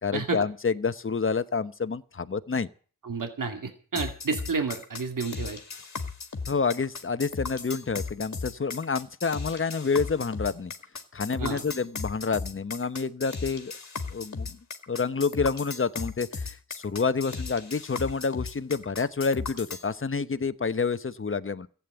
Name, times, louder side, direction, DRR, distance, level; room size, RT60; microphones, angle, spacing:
voice 1, 0.0-2.7 6.5-10.7 11.1-13.7 14.1-14.6 14.9-21.7, left 5 dB, 35° left, 0.9 m, -28 dB
voice 2, 3.0-5.6 11.4-11.6, right 4 dB, 65° right, 2.4 m, -30 dB
sound 1, 4.0-19.9, left 4 dB, 55° left, 2.0 m, -36 dB
15.0 x 8.7 x 9.0 m
wide cardioid pair, 65°, 34 cm